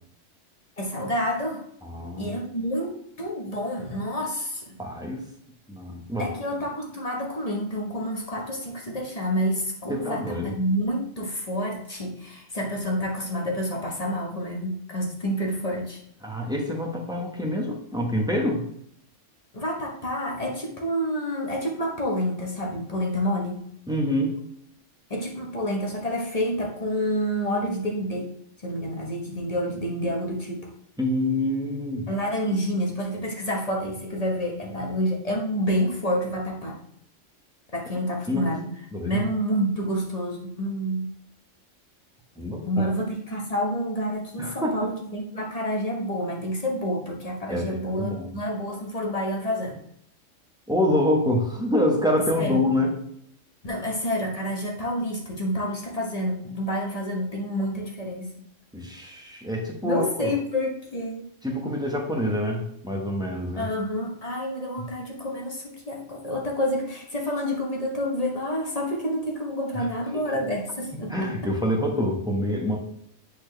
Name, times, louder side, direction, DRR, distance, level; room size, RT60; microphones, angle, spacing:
voice 1, 0.8-1.6 2.2-4.8 6.2-16.0 19.5-23.7 25.1-28.3 28.6-30.7 32.1-36.8 37.7-38.7 39.0-41.1 42.6-49.8 52.2-52.6 53.6-58.5 59.8-61.3 63.6-71.3, equal, 30° left, 0 dB, 1.3 m, -28 dB
voice 2, 1.8-2.4 4.8-5.2 5.7-6.3 9.9-10.5 16.2-18.7 23.9-24.4 31.0-32.1 38.3-38.5 38.9-39.2 42.4-42.9 44.4-44.8 47.5-48.4 50.7-52.9 58.7-60.3 61.4-63.7 69.7-69.9 70.1-70.2 71.1-72.8, left 1 dB, 5° right, -1 dB, 1.1 m, -26 dB
8.3 x 4.3 x 3.3 m, 0.70 s
omnidirectional pair, 1.3 m